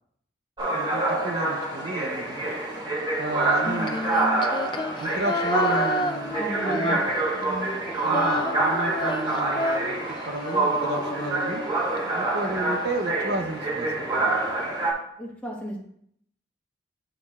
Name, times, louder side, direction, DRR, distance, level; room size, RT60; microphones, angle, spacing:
sound 1, 0.6-14.9, right 2 dB, 25° right, 1.1 m, -27 dB
voice 1, 0.7-2.7 3.2-4.7 4.9-6.4 6.6-7.0 8.0-10.0 10.3-11.6 12.2-14.4, right 2 dB, 60° right, 5 dB, 0.6 m, -32 dB
Female singing, 3.5-7.4 7.7-12.0, left 2 dB, 25° left, 0.3 m, -30 dB
voice 2, 6.3-7.0 7.3-8.3 12.5-12.7 15.2-15.8, right 1 dB, 5° left, -4 dB, 1.3 m, -36 dB
11.0 x 4.3 x 2.3 m, 0.68 s
head